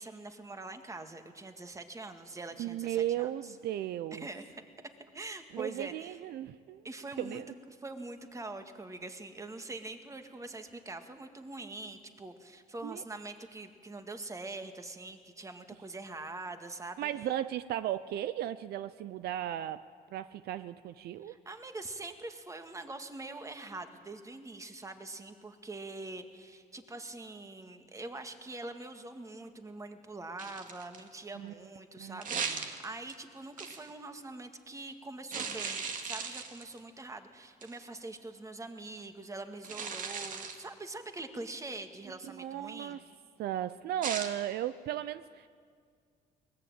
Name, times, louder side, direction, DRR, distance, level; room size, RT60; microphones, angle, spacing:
voice 1, 0.0-3.5 4.1-4.5 5.1-6.2 6.8-7.4 7.8-17.1 21.2-43.0, right 2 dB, 20° right, 7 dB, 2.0 m, -44 dB
voice 2, 2.6-4.3 5.5-6.9 7.2-7.5 12.8-13.0 17.0-19.8 20.1-21.4 31.3-31.5 32.0-32.6 42.3-43.0 43.4-45.5, right 12 dB, 70° right, 14 dB, 0.7 m, -36 dB
sound 1, 30.4-31.1 32.2-33.1 33.6-33.9 35.3-36.8 37.6-37.8 39.6-40.7 44.0-44.3, right 5 dB, 50° right, 2.4 m, -37 dB
22.5 x 20.0 x 9.0 m, 2.1 s
cardioid pair, 110°, 17 cm